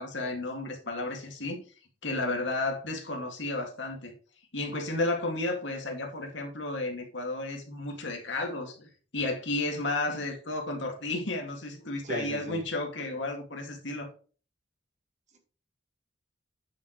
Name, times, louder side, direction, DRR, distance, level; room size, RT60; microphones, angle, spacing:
voice 1, 0.0-1.6 2.0-4.1 4.5-14.1, left 2 dB, 75° left, 2.2 m, -32 dB
voice 2, 12.0-12.6, right 1 dB, 40° right, 1.7 m, -37 dB
8.8 x 7.3 x 3.1 m
head